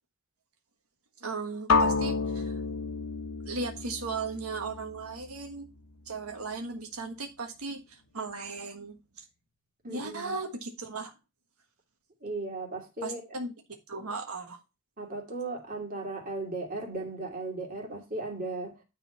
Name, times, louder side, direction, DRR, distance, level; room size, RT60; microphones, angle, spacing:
voice 1, 1.2-2.6 3.4-5.7 6.0-9.2 9.9-11.1 13.0-13.5 13.9-14.6, right 3 dB, 90° right, 1.4 m, -37 dB
sound 1, 1.7-5.7, left 4 dB, 80° left, 1.0 m, -30 dB
voice 2, 9.8-10.4 12.2-13.2 15.0-18.7, right 2 dB, 40° right, 2.6 m, -36 dB
9.9 x 4.2 x 5.5 m
head